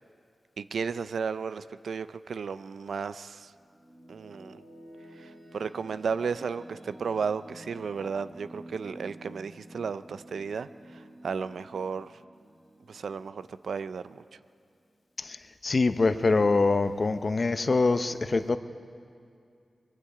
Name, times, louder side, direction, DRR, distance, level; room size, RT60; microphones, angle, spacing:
voice 1, 0.6-3.5 4.1-4.6 5.2-12.2 12.9-14.2, right 5 dB, 85° right, 14 dB, 0.5 m, -34 dB
sound 1, 3.5-14.5, right 1 dB, 45° right, 5.6 m, -51 dB
voice 2, 15.6-18.6, left 3 dB, 45° left, 10 dB, 0.7 m, -24 dB
24.0 x 22.5 x 4.9 m, 2.4 s
wide cardioid pair, 100°, 0 cm